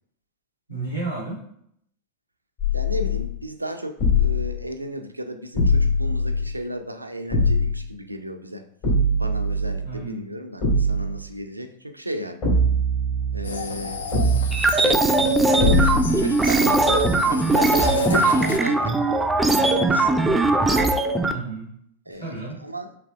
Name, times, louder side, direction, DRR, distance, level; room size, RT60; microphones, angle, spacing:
voice 1, 0.7-1.4 9.8-10.3 21.2-21.7 22.1-22.6, right 3 dB, 80° left, -5 dB, 1.7 m, -32 dB
sound 1, 2.6-3.4 4.0-4.6 5.5-6.6 7.3-7.9 8.8-9.9 10.6-11.2 12.4-13.5 14.1-14.7 15.6-16.2, left 1 dB, 45° left, 1.7 m, -22 dB
voice 2, 2.7-8.7 9.2-12.4 13.3-14.0 14.7-15.1 15.5-20.4 20.7-21.0 22.1-22.3 22.6-22.9, equal, 85° right, 7 dB, 0.4 m, -34 dB
sound 2, 13.4-18.6, left 4 dB, 65° left, 0.4 m, -32 dB
sound 3, 14.5-21.3, right 2 dB, 10° right, 0.4 m, -20 dB
5.8 x 3.2 x 2.4 m, 0.69 s
figure-of-eight pair, 90°, 0 cm